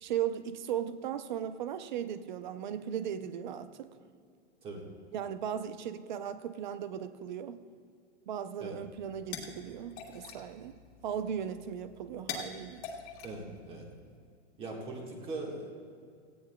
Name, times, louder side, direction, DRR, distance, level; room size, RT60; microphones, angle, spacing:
voice 1, 0.0-3.9 5.1-7.6 8.3-10.7 11.0-12.8, right 9 dB, 40° right, 12 dB, 0.6 m, -37 dB
sound 1, 8.8-14.2, left 6 dB, 30° left, 1.6 m, -46 dB
voice 2, 13.2-13.8 14.6-15.7, right 2 dB, 15° right, 0 dB, 1.5 m, -40 dB
18.0 x 15.5 x 2.2 m, 2.2 s
hypercardioid pair, 165°, 36 cm